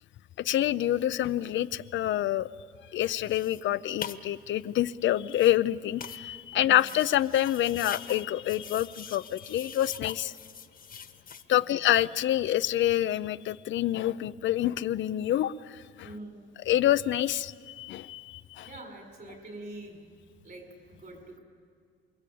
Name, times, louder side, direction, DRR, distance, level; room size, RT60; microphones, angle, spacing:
voice 1, 0.4-2.5 2.9-10.3 11.5-15.5 16.0-16.1 16.7-18.7, left 12 dB, 70° left, 13 dB, 0.6 m, -27 dB
sound 1, 3.0-11.4, left 7 dB, 45° left, 1.3 m, -44 dB
voice 2, 16.0-16.4 18.6-20.1 20.4-21.4, right 2 dB, 50° right, 2 dB, 7.1 m, -45 dB
28.5 x 21.5 x 8.6 m, 2.1 s
cardioid pair, 90°, 20 cm